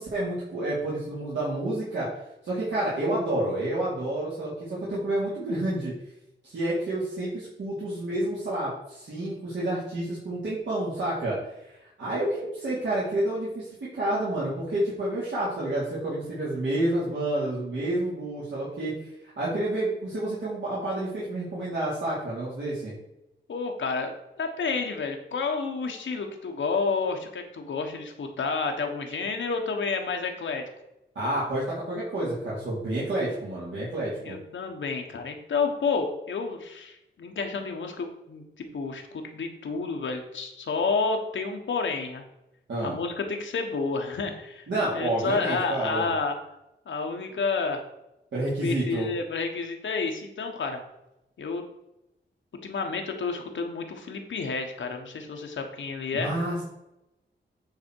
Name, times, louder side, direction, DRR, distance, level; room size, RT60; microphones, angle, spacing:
voice 1, 0.0-2.1 2.4-5.9 6.4-11.4 11.6-18.9 19.4-22.9 31.1-34.4 42.7-43.0 44.7-46.1 48.3-49.1 56.1-56.6, right 1 dB, 75° right, -8 dB, 2.8 m, -29 dB
voice 2, 23.5-30.6 34.2-42.2 42.8-44.7 44.9-46.4 46.9-47.9 48.6-50.8 51.4-51.6 52.6-56.3, left 4 dB, 85° left, 4 dB, 1.3 m, -30 dB
9.3 x 4.3 x 4.7 m, 0.90 s
wide cardioid pair, 105°, 19 cm